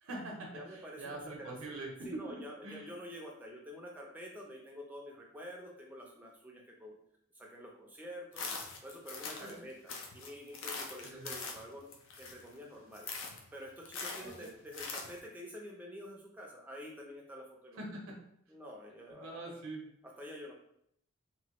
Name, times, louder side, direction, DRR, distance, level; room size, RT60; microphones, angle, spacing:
voice 1, 0.0-2.2 2.6-2.9 9.4-9.6 11.0-11.3 14.2-14.5 17.8-18.2 19.1-19.8, right 2 dB, 85° right, 0 dB, 0.7 m, -44 dB
voice 2, 0.5-1.8 2.0-7.0 7.3-8.5 8.8-13.1 13.5-17.8 18.5-19.6 20.0-20.5, equal, 10° right, -1 dB, 0.4 m, -48 dB
sound 1, 8.3-9.6 9.9-12.6 12.9-13.4 13.8-15.2, left 4 dB, 70° left, 0.5 m, -42 dB
3.0 x 2.2 x 2.9 m, 0.72 s
head